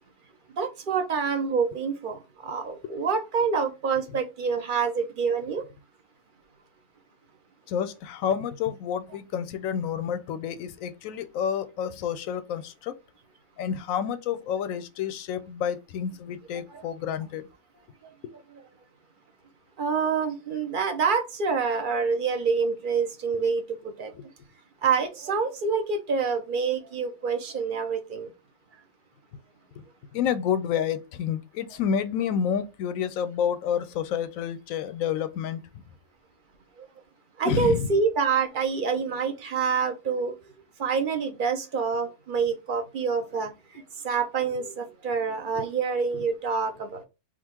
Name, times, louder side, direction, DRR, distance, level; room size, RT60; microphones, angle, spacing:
voice 1, 0.6-5.6 16.7-16.8 19.8-24.1 24.8-28.3 37.4-40.3 40.8-43.5 44.0-47.0, right 5 dB, 50° right, 0.6 m, -27 dB
voice 2, 7.7-13.0 13.6-17.5 18.2-18.3 24.2-24.3 29.8-35.8 37.5-37.9 45.5-45.6, left 8 dB, 70° left, 0.9 m, -29 dB
3.7 x 2.3 x 4.4 m
omnidirectional pair, 1.6 m